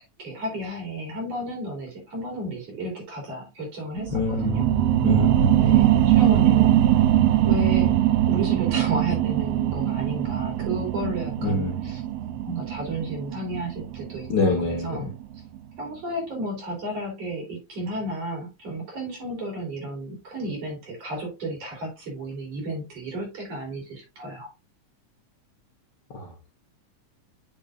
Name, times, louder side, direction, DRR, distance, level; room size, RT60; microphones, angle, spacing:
voice 1, 0.2-4.7 5.5-6.7 7.4-7.9 8.3-12.0 12.5-15.1 15.8-24.5, right 1 dB, 55° right, 4.3 m, -33 dB
sound 1, 4.0-15.1 15.6-15.7, right 12 dB, 75° right, 1.5 m, -22 dB
voice 2, 4.1-4.6 5.0-5.5 11.4-11.8 14.3-15.1 26.1-26.5, left 3 dB, 50° left, 1.5 m, -26 dB
8.3 x 6.4 x 2.4 m
omnidirectional pair, 3.4 m